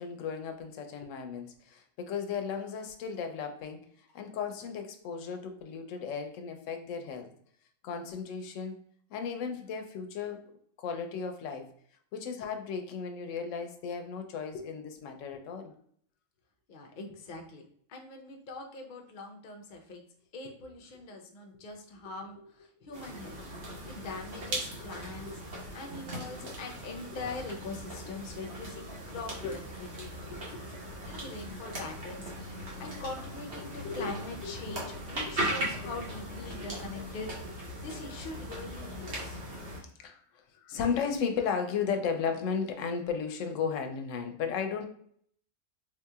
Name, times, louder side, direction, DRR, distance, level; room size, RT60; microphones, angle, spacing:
voice 1, 0.0-3.8 4.1-7.3 7.8-8.8 9.1-10.4 10.8-11.7 12.1-15.7 22.4-22.5 24.9-25.4 26.4-26.5 29.4-29.6 30.2-30.6 33.8-34.1 34.4-35.0 35.2-35.3 36.5-36.7 39.5-40.2 40.6-44.9, left 6 dB, 75° left, 5 dB, 0.9 m, -35 dB
voice 2, 16.7-17.6 17.9-20.0 20.3-23.4 23.8-25.3 25.7-30.1 31.1-39.4, left 3 dB, 50° left, 2 dB, 0.6 m, -42 dB
sound 1, 22.9-39.8, right 1 dB, 55° right, 1.3 m, -39 dB
4.2 x 2.8 x 2.3 m, 0.62 s
omnidirectional pair, 1.4 m